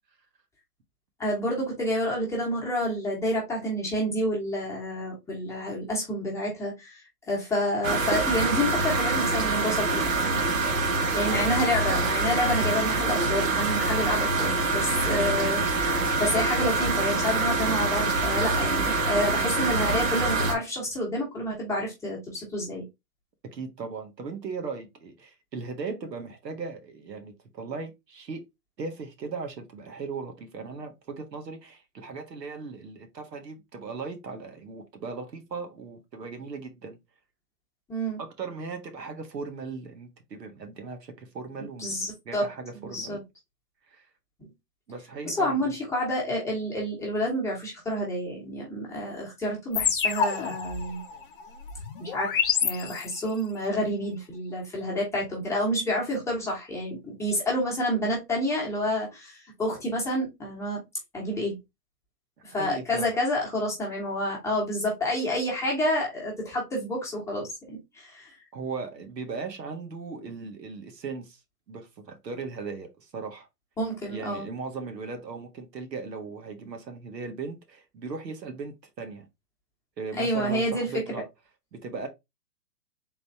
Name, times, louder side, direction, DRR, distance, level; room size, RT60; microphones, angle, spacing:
voice 1, 1.2-7.0 7.3-10.4 11.1-22.8 37.9-38.2 41.8-42.5 42.8-43.2 44.4-44.5 45.3-51.0 52.0-52.3 52.6-60.8 61.1-61.6 62.4-68.3 73.8-74.5 80.2-81.0, equal, 5° left, 1.2 m, -29 dB
sound 1, 7.8-20.5, right 3 dB, 50° right, 1.3 m, -25 dB
voice 2, 11.2-11.8 23.5-28.4 28.8-37.0 38.2-42.0 42.2-43.2 43.9-44.1 44.9-45.7 62.5-63.1 68.5-71.4 71.7-73.5 74.1-79.3 80.0-81.2 81.7-82.1, right 4 dB, 80° right, 1.5 m, -38 dB
sound 2, 49.7-53.4, left 7 dB, 35° left, 0.5 m, -28 dB
3.9 x 3.1 x 3.4 m
hypercardioid pair, 140°, 49 cm